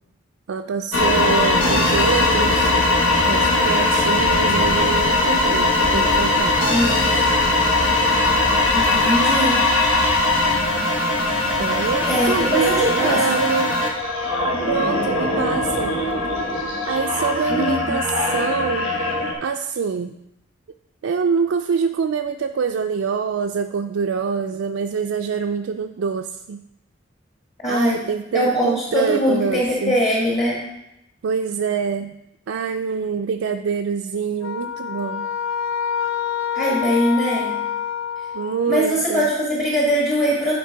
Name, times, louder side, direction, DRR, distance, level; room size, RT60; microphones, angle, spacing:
voice 1, 0.5-2.8 3.2-6.6 11.6-13.7 14.7-16.0 16.9-20.1 21.0-26.6 27.7-30.0 31.2-32.1 32.5-35.3 38.3-39.3, right 6 dB, 75° right, 5 dB, 0.4 m, -25 dB
sound 1, 0.9-19.3, left 2 dB, 90° left, 1.2 m, -20 dB
voice 2, 6.7-7.1 8.7-9.6 12.0-13.6 17.5-18.0 27.6-28.0 28.3-30.6 36.5-37.6 38.6-40.6, equal, 35° left, -5 dB, 1.4 m, -21 dB
sound 2, 34.4-38.8, left 8 dB, 70° left, 0.4 m, -27 dB
10.0 x 4.4 x 4.6 m, 0.88 s
head